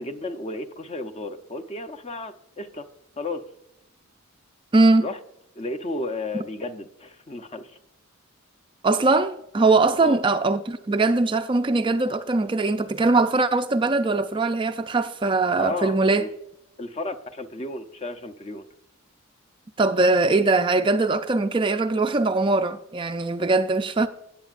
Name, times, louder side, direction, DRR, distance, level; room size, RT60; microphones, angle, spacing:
voice 1, 0.0-2.9 3.2-3.4 5.0-5.2 5.6-7.8 10.0-10.2 15.6-16.3 16.8-18.7, left 2 dB, 30° left, 0.6 m, -33 dB
voice 2, 4.7-5.1 8.8-16.3 19.8-24.1, right 3 dB, 25° right, 0.4 m, -21 dB
16.5 x 8.0 x 2.5 m
head